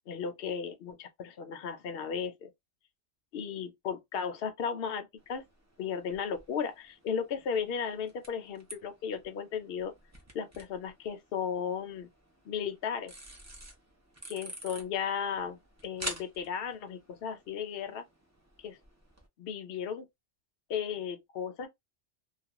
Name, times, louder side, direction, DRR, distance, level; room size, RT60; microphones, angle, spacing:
voice 1, 0.1-2.5 3.3-5.4 5.8-9.9 10.3-12.1 12.5-13.1 14.3-18.1 18.6-18.8 19.4-20.1 20.7-21.7, left 7 dB, 60° left, 0.7 m, -35 dB
sound 1, 5.2-19.3, right 1 dB, 20° right, 0.4 m, -49 dB
2.4 x 2.2 x 2.9 m
omnidirectional pair, 1.2 m